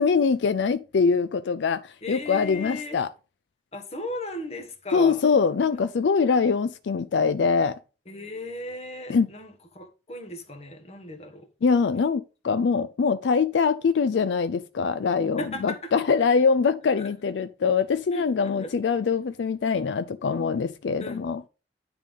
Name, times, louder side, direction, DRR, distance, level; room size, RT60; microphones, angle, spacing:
voice 1, 0.0-3.1 4.9-7.8 9.1-9.3 11.6-21.4, left 5 dB, 85° left, 0.4 m, -23 dB
voice 2, 2.0-3.0 3.7-5.2 8.1-11.5 15.4-15.9 16.2-16.3 18.1-18.2 18.6-18.7 21.0-21.2, left 1 dB, 35° left, 1.4 m, -36 dB
9.8 x 3.6 x 5.3 m
head